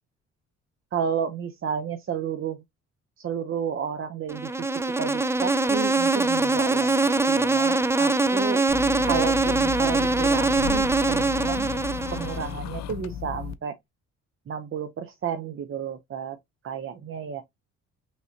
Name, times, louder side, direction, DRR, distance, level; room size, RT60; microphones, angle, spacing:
voice 1, 0.9-2.6 3.2-4.7 5.0-8.6 9.1-11.7 12.1-13.8 14.5-16.4 16.6-17.4, right 7 dB, 45° right, 0.7 m, -32 dB
Insect, 4.3-12.5, right 3 dB, 10° right, 0.4 m, -23 dB
sound 1, 8.7-13.5, left 8 dB, 60° left, 0.6 m, -34 dB
5.4 x 3.2 x 2.8 m
cardioid pair, 90°, 30 cm